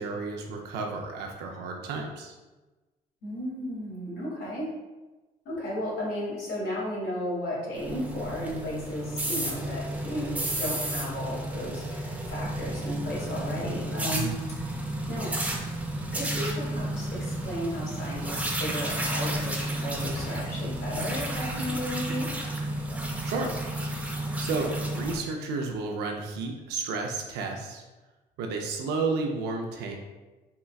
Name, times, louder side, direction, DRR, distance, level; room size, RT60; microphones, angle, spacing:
voice 1, 0.0-2.3 14.1-14.4 23.2-23.6 24.4-27.8 28.4-30.0, right 3 dB, 80° right, 2 dB, 0.4 m, -32 dB
voice 2, 3.2-4.7 5.4-14.3 14.6-14.7 15.1-15.3 16.1-22.3, equal, 70° left, -6 dB, 1.4 m, -34 dB
sound 1, 7.7-25.2, right 1 dB, 10° right, 0.5 m, -32 dB
3.6 x 2.2 x 2.2 m, 1.2 s
cardioid pair, 110°, 17 cm